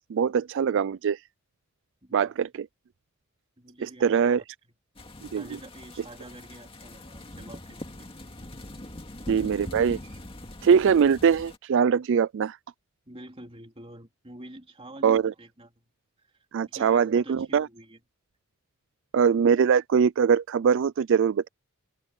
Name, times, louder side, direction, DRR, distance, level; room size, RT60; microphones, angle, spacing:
voice 1, 0.1-1.2 2.1-2.5 4.0-4.4 5.3-5.4 9.3-10.0 10.6-12.6 15.0-15.2 16.5-17.7 19.1-21.5, right 7 dB, 55° right, 0.3 m, -22 dB
voice 2, 2.0-2.3 3.6-4.4 5.3-8.1 13.0-15.9 16.2-18.0, right 1 dB, 25° right, 3.4 m, -47 dB
sound 1, 5.0-11.6, left 1 dB, 25° left, 2.2 m, -42 dB
head